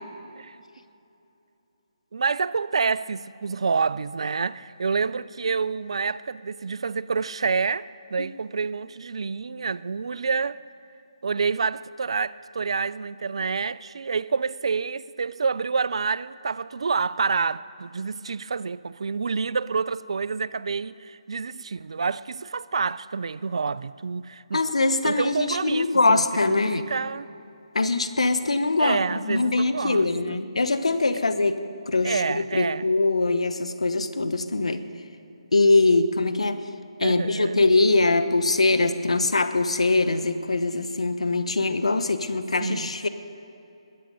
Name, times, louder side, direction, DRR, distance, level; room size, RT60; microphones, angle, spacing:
voice 1, 2.1-10.6 11.2-24.6 25.0-27.3 28.8-30.4 32.0-32.9 37.0-37.6 42.6-42.9, right 5 dB, 65° right, 0.4 m, -28 dB
voice 2, 24.5-26.8 27.7-29.0 29.2-31.6 31.9-34.8 35.5-36.6 37.0-43.1, left 3 dB, 80° left, 0.9 m, -22 dB
21.0 x 8.8 x 5.3 m
figure-of-eight pair, 150°, 3 cm